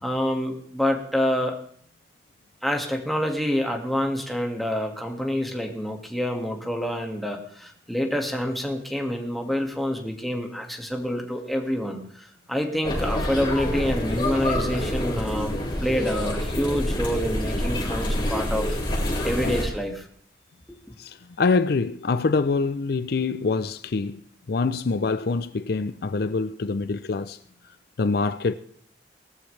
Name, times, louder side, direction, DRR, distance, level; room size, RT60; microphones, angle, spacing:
voice 1, 0.0-1.6 2.6-18.8 19.2-20.1 20.9-21.0, equal, ahead, 1.9 m, -27 dB
sound 1, 12.8-19.7, left 1 dB, 30° left, 5.0 m, -27 dB
voice 2, 21.0-24.2 24.5-27.4 28.0-28.5, left 4 dB, 60° left, 0.5 m, -25 dB
19.0 x 13.5 x 3.3 m
head